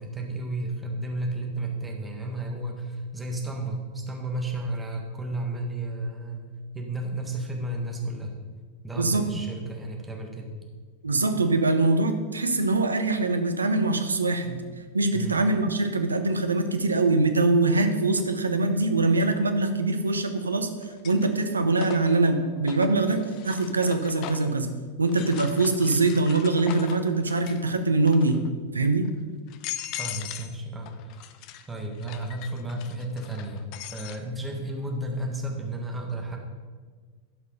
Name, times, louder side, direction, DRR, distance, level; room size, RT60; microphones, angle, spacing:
voice 1, 0.0-6.5 6.7-8.3 8.8-10.5 15.1-15.4 30.0-31.3 31.7-36.4, right 1 dB, 10° right, 1 dB, 1.6 m, -33 dB
voice 2, 9.0-9.3 11.0-14.6 14.9-20.7 21.0-24.7 25.0-28.4 28.7-29.1, right 2 dB, 75° right, 8 dB, 0.8 m, -23 dB
sound 1, 18.2-18.3 20.0-20.4 20.8-24.6 25.1-27.7 28.0-28.5 29.0-29.1 29.5-30.6 30.8-34.2, left 11 dB, 40° left, 0.5 m, -40 dB
12.0 x 5.4 x 5.3 m, 1.5 s
figure-of-eight pair, 90°, 0 cm